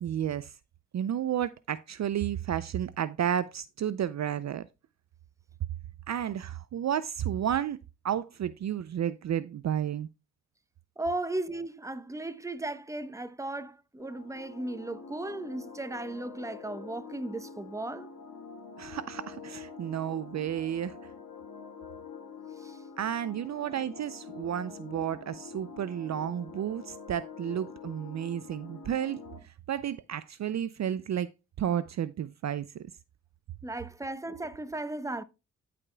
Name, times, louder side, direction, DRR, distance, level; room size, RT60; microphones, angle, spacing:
voice 1, 0.0-0.6 0.9-4.7 6.1-10.1 18.8-21.0 23.0-31.3 31.6-32.9, right 10 dB, 50° right, 0.5 m, -32 dB
voice 2, 11.0-18.1 22.6-22.8 33.6-35.2, right 2 dB, 10° right, 0.8 m, -36 dB
sound 1, 14.0-29.4, left 5 dB, 80° left, 1.9 m, -46 dB
14.5 x 5.0 x 2.2 m
supercardioid pair, 55°, 35 cm